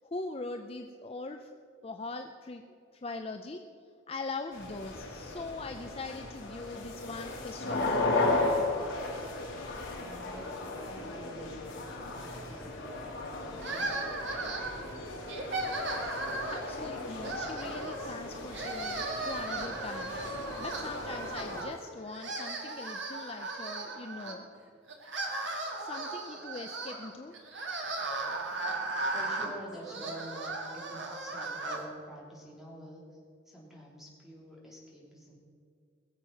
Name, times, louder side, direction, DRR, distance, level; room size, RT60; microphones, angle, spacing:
voice 1, 0.0-1.5 1.8-2.6 2.9-3.6 4.1-7.9 16.4-24.4 25.8-27.4, left 3 dB, 30° left, 5 dB, 0.5 m, -41 dB
sound 1, 4.5-21.6, left 2 dB, 75° left, 2.9 m, -36 dB
voice 2, 9.9-14.2 29.1-33.2 33.4-35.4, equal, ahead, -5 dB, 3.2 m, -48 dB
sound 2, 13.6-14.9 15.3-16.7 17.2-18.2 18.5-21.8 22.1-24.3 24.9-31.8, right 2 dB, 65° right, 1.9 m, -36 dB
21.0 x 7.4 x 5.8 m, 2.4 s
head